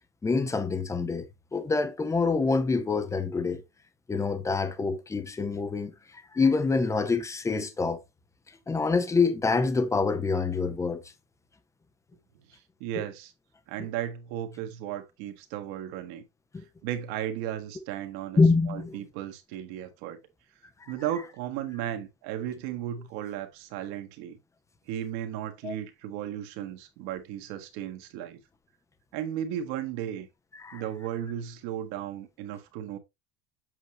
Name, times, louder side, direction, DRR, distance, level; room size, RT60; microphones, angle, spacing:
voice 1, 0.2-1.3 1.5-3.6 4.1-8.0 8.7-11.0 13.0-13.1 16.5-16.6 18.4-19.0 20.8-20.9 25.6-25.7 30.5-30.8, left 4 dB, 5° left, 0.6 m, -26 dB
voice 2, 12.5-13.3 13.7-16.2 16.8-18.4 18.7-20.2 20.9-24.4 24.9-28.4 29.1-30.3 30.7-33.0, right 11 dB, 50° right, 1.7 m, -35 dB
8.1 x 6.2 x 3.1 m
supercardioid pair, 155°, 45 cm